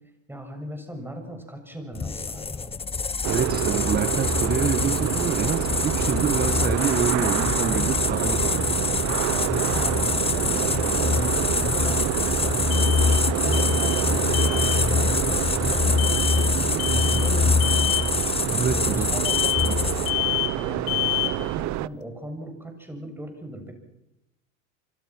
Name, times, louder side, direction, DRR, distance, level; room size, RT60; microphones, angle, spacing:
voice 1, 0.3-2.8 7.5-8.5 8.8-13.0 13.3-17.9 18.7-19.7 20.5-23.7, right 1 dB, 5° right, 4 dB, 7.3 m, -38 dB
sound 1, 1.9-20.3, left 5 dB, 15° left, 1.2 m, -25 dB
sound 2, 3.2-21.9, right 17 dB, 45° right, 0.8 m, -27 dB
voice 2, 3.3-8.4 18.5-19.1 19.6-19.9, right 7 dB, 25° right, 12 dB, 1.4 m, -27 dB
sound 3, 9.4-9.5 12.7-13.3 13.5-14.1 14.3-14.8 16.0-16.5 16.8-17.3 17.6-18.1 19.2-19.8 20.1-20.6 20.9-21.4, left 21 dB, 60° left, 1.5 m, -28 dB
26.5 x 25.0 x 6.1 m, 0.89 s
hypercardioid pair, 100°, 40 cm